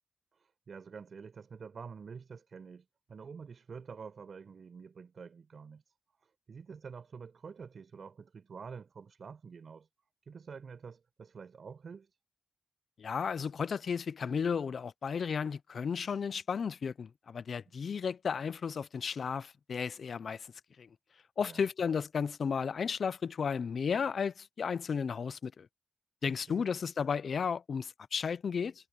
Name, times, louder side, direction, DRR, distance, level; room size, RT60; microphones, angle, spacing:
voice 1, 0.3-5.8 6.2-9.9 10.3-12.1 21.4-21.7 26.3-26.7, right 5 dB, 75° right, 4.6 m, -48 dB
voice 2, 13.0-20.5 20.8-20.9 21.4-25.7 26.2-28.7, left 6 dB, 80° left, 0.5 m, -34 dB
wide cardioid pair, 80°, 0 cm